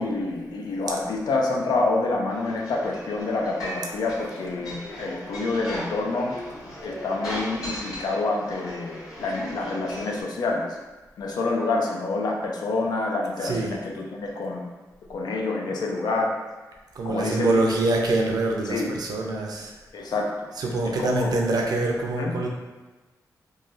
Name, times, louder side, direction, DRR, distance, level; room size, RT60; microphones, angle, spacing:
voice 1, 0.0-6.3 6.8-10.8 11.2-14.7 15.1-16.3 17.0-17.6 18.7-18.9 19.9-20.3 20.8-21.3 22.2-22.3, left 3 dB, 80° left, 0 dB, 0.5 m, -27 dB
sound 1, 2.3-10.2, equal, 60° left, 1.5 m, -37 dB
voice 2, 13.4-13.8 16.9-19.7 20.6-22.5, right 2 dB, 75° right, 0 dB, 0.5 m, -25 dB
3.1 x 2.2 x 2.6 m, 1.2 s
cardioid pair, 85°, 7 cm